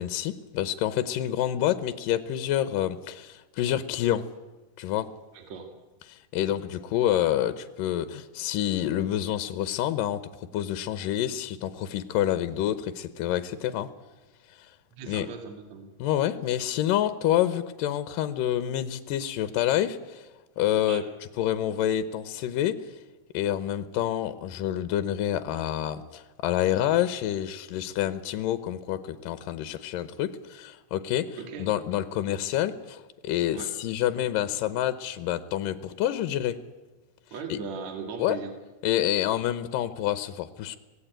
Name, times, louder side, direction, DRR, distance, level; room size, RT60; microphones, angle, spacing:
voice 1, 0.0-4.2 4.8-5.1 6.1-13.9 15.1-15.3 16.0-20.2 20.6-21.0 21.4-22.8 23.3-36.5 37.5-37.6 38.2-38.4 38.8-40.8, left 11 dB, 80° left, 12 dB, 2.5 m, -28 dB
voice 2, 5.3-5.7 14.9-15.9 20.9-21.1 31.4-31.7 33.5-33.7 37.3-38.5, right 5 dB, 55° right, 5 dB, 3.1 m, -38 dB
25.0 x 17.5 x 8.9 m, 1.2 s
omnidirectional pair, 4.0 m